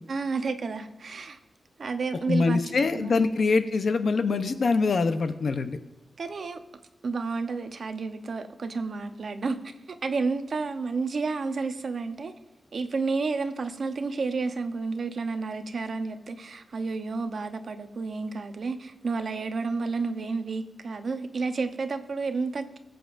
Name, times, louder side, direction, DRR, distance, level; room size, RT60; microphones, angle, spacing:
voice 1, 0.1-1.4 1.8-2.6 2.9-3.3 6.2-6.6 7.0-12.3 12.7-22.8, right 4 dB, 55° right, 0.8 m, -31 dB
voice 2, 2.3-5.8, left 4 dB, 55° left, 0.7 m, -24 dB
21.5 x 7.9 x 2.6 m
wide cardioid pair, 125°, 0 cm